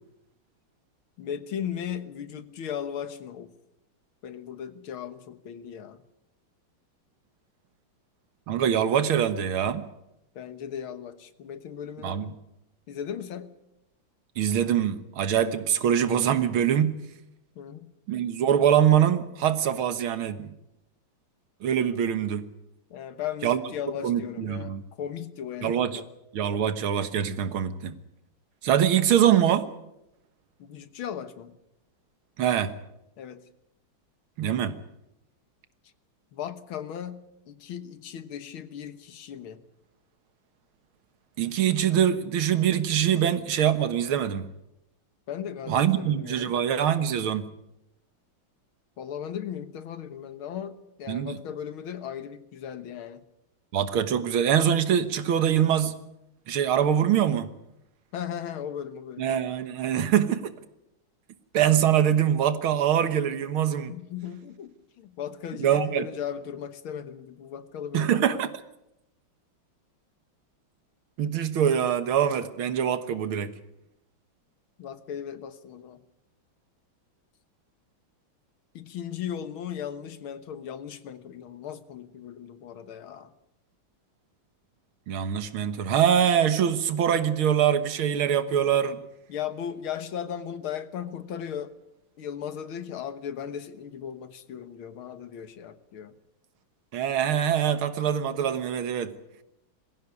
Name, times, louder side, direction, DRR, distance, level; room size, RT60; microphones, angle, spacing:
voice 1, 1.2-3.5 4.2-6.0 10.4-12.2 12.9-13.5 17.6-17.9 22.9-26.1 30.6-31.5 33.2-33.4 36.3-39.6 45.3-46.6 49.0-53.2 58.1-59.3 63.9-68.1 74.8-76.0 78.7-83.3 89.3-91.7 92.2-96.1, left 9 dB, 80° left, 2.1 m, -37 dB
voice 2, 8.5-9.9 12.0-12.3 14.4-17.0 18.1-20.5 21.6-22.5 23.4-23.6 24.0-24.8 25.6-26.0 26.3-28.0 28.6-29.7 32.4-32.7 34.4-34.8 41.4-44.5 45.7-47.5 51.1-51.4 53.7-56.0 56.5-57.5 59.2-60.5 61.5-63.9 65.6-66.1 67.9-68.5 71.2-73.5 85.1-89.0 96.9-99.1, right 9 dB, 85° right, 2.2 m, -24 dB
21.5 x 15.5 x 9.8 m
omnidirectional pair, 2.2 m